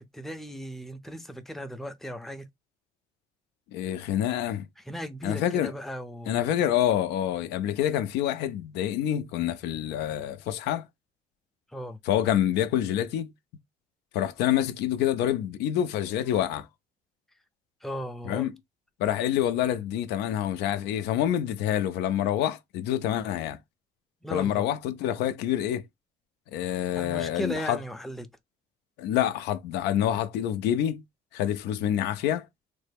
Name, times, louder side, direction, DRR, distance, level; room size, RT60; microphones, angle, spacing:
voice 1, 0.0-2.5 4.8-6.5 11.7-12.0 17.8-18.5 24.2-24.7 26.9-28.3, equal, ahead, 0.5 m, -36 dB
voice 2, 3.7-4.7 5.2-5.7 6.3-10.9 12.1-13.3 14.1-16.7 18.2-18.5 19.0-23.6 24.3-25.8 26.5-27.8 29.0-31.0 31.3-32.5, left 11 dB, 85° left, 0.4 m, -27 dB
3.2 x 2.1 x 3.3 m
cardioid pair, 110°, 17 cm